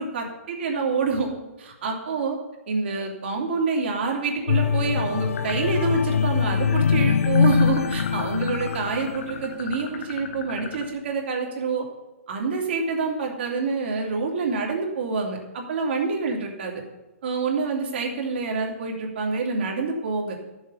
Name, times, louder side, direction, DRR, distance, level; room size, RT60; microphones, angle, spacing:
voice 1, 0.0-2.4 2.7-11.9 12.3-16.8 17.2-20.3, right 4 dB, 50° right, 0 dB, 3.0 m, -27 dB
sound 1, 4.5-9.7 10.2-10.4, left 6 dB, 90° left, 0.6 m, -23 dB
sound 2, 5.4-6.0 6.3-10.9, left 8 dB, 35° left, 1.1 m, -37 dB
13.0 x 7.4 x 5.8 m, 1.1 s
hypercardioid pair, 165°, 7 cm